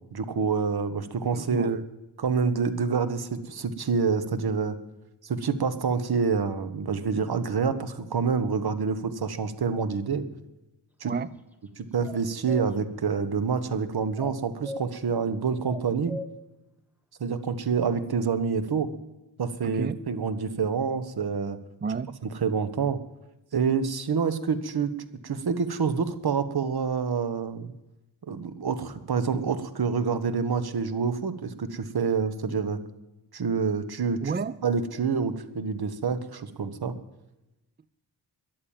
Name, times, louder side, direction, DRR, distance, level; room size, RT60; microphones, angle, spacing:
voice 1, 0.1-1.8 2.2-4.8 5.2-10.2 11.0-11.1 11.8-16.2 17.2-18.9 19.4-21.6 22.4-23.0 23.5-24.9 25.2-27.7 28.3-32.8 33.3-34.2 34.6-36.9, right 5 dB, 60° right, 12 dB, 1.5 m, -27 dB
voice 2, 1.3-1.7 11.0-11.3 19.6-20.0 21.8-22.2 34.2-34.6, right 5 dB, 25° right, 18 dB, 0.5 m, -31 dB
sound 1, 12.1-12.7 14.2-14.8 15.7-16.3, left 2 dB, 5° right, 1.6 m, -37 dB
13.5 x 11.0 x 7.4 m, 0.95 s
cardioid pair, 85°, 42 cm